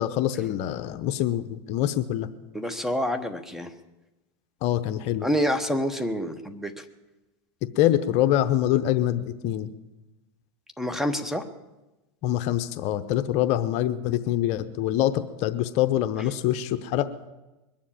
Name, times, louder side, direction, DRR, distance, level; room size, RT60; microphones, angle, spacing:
voice 1, 0.0-2.3 4.6-5.3 7.8-9.7 12.2-17.1, left 12 dB, 50° left, 11 dB, 0.8 m, -25 dB
voice 2, 2.5-3.7 5.2-6.8 10.8-11.5, equal, 5° right, 9 dB, 1.1 m, -27 dB
22.0 x 7.4 x 8.8 m, 1.1 s
supercardioid pair, 120°, 15 cm